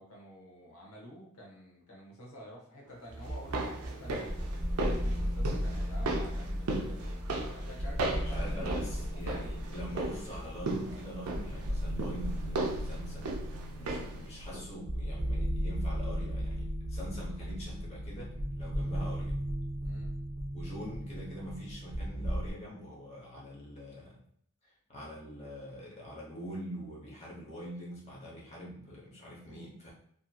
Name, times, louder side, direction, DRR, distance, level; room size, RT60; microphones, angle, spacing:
voice 1, 0.0-7.2 7.5-9.2 19.8-20.1, equal, 80° left, -3 dB, 0.9 m, -50 dB
sound 1, 3.1-22.5, equal, 25° right, 0.5 m, -36 dB
sound 2, 3.2-14.3 14.5-14.6, right 2 dB, 80° right, 0.5 m, -37 dB
voice 2, 8.2-13.3 13.7-19.3 20.5-24.2 24.6-29.9, equal, 30° left, -5 dB, 0.9 m, -44 dB
2.8 x 2.6 x 2.3 m, 0.68 s
head